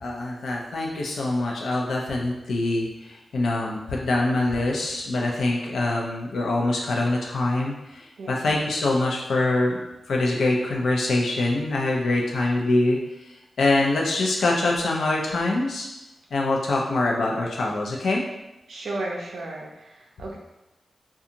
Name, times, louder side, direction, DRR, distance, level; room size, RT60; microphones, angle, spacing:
voice 1, 0.0-9.8 10.1-13.0 13.2-15.9 16.3-18.2, left 2 dB, 85° left, -1 dB, 0.5 m, -24 dB
voice 2, 18.7-20.4, right 2 dB, 90° right, -2 dB, 0.4 m, -34 dB
2.5 x 2.3 x 2.8 m, 0.97 s
wide cardioid pair, 180°, 0 cm